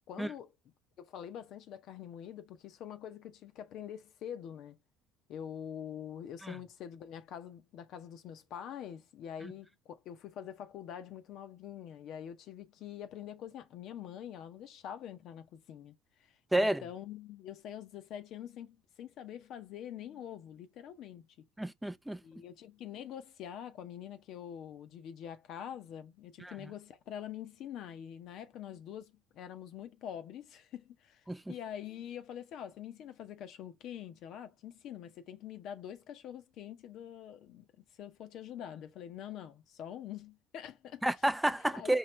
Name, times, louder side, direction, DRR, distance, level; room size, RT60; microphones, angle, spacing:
voice 1, 0.1-0.5 1.0-4.8 5.3-21.2 22.2-41.0 41.7-42.0, left 9 dB, 60° left, 0.6 m, -45 dB
voice 2, 16.5-16.8 21.6-22.2 26.4-26.5 31.3-31.5 41.0-42.0, right 1 dB, 5° right, 0.4 m, -30 dB
4.6 x 2.8 x 3.1 m
hypercardioid pair, 65°, 0 cm